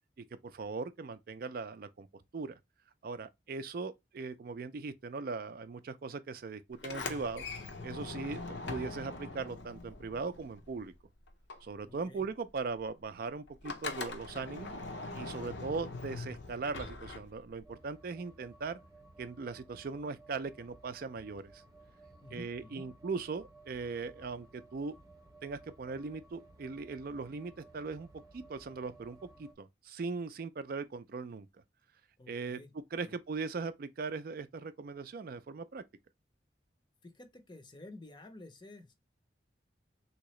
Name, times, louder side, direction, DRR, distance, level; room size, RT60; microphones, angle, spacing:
voice 1, 0.2-2.1 2.3-2.6 3.0-7.4 7.8-10.9 11.6-14.7 15.1-18.8 19.2-21.6 22.3-25.0 25.4-28.1 28.3-31.5 32.3-32.6 32.9-35.8, right 4 dB, 50° right, 0.4 m, -39 dB
Sliding door, 6.7-11.0 11.3-17.7, left 3 dB, 70° left, 0.7 m, -42 dB
voice 2, 11.9-12.3 22.2-22.9 32.2-32.7 33.0-33.2 37.0-38.9, left 2 dB, 25° left, 0.5 m, -51 dB
sound 1, 17.6-29.5, right 2 dB, 20° right, 0.8 m, -57 dB
3.6 x 2.9 x 3.1 m
head